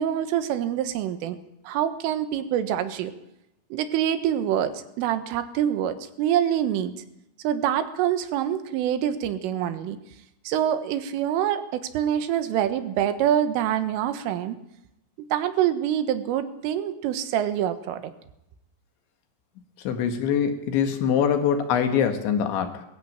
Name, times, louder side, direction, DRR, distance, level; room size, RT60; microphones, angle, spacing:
voice 1, 0.0-1.4 1.7-3.1 3.7-6.9 7.4-10.0 10.5-14.6 15.2-18.1, right 10 dB, 80° right, 11 dB, 3.9 m, -25 dB
voice 2, 19.8-22.8, left 8 dB, 70° left, 7 dB, 3.9 m, -23 dB
22.0 x 14.0 x 8.8 m, 0.83 s
omnidirectional pair, 5.8 m